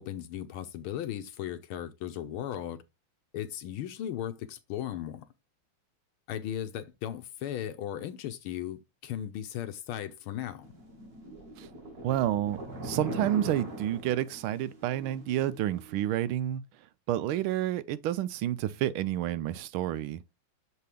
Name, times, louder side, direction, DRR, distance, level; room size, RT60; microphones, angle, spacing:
voice 1, 0.0-2.8 3.3-5.3 6.3-10.7, left 11 dB, 90° left, 1.7 m, -36 dB
sound 1, 10.6-16.0, right 1 dB, 45° right, 2.4 m, -41 dB
voice 2, 12.0-16.6 17.1-20.2, right 12 dB, 85° right, 1.5 m, -30 dB
6.8 x 4.7 x 3.5 m
omnidirectional pair, 2.3 m